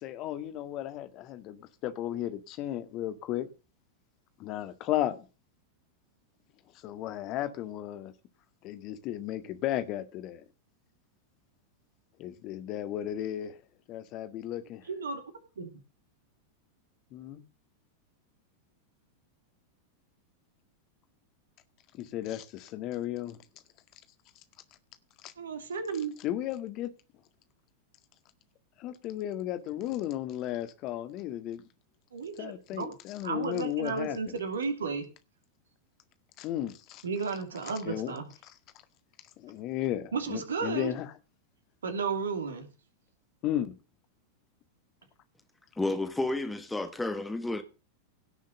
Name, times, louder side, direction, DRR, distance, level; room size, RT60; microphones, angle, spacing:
voice 1, 0.0-3.5 4.4-5.2 6.8-8.1 8.6-10.4 12.2-13.6 13.9-14.9 17.1-17.4 21.9-23.4 25.2-25.3 26.2-26.9 28.8-31.6 32.4-34.4 36.4-37.0 37.9-38.1 38.4-38.5 39.4-41.1 43.4-43.7, left 12 dB, 40° left, 1.8 m, -34 dB
voice 2, 14.9-15.2 15.6-15.8 25.4-26.1 32.1-32.9 33.2-35.1 37.0-38.3 40.1-40.9 41.8-42.7, right 5 dB, 70° right, 2.9 m, -33 dB
voice 3, 45.8-47.6, left 2 dB, 5° left, 1.5 m, -31 dB
17.0 x 6.4 x 6.6 m
figure-of-eight pair, 90°, 0 cm